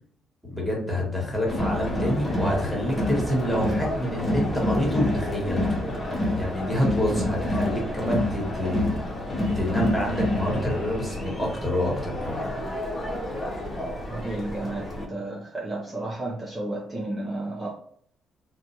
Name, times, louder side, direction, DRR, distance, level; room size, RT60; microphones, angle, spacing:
voice 1, 0.4-5.6 6.4-8.9 9.5-12.5, equal, 5° left, -3 dB, 1.4 m, -27 dB
Crowd, 1.5-15.0, left 1 dB, 25° left, 0.9 m, -28 dB
voice 2, 14.0-17.7, right 2 dB, 25° right, -4 dB, 0.6 m, -32 dB
2.7 x 2.2 x 2.7 m, 0.62 s
cardioid pair, 90°, 0 cm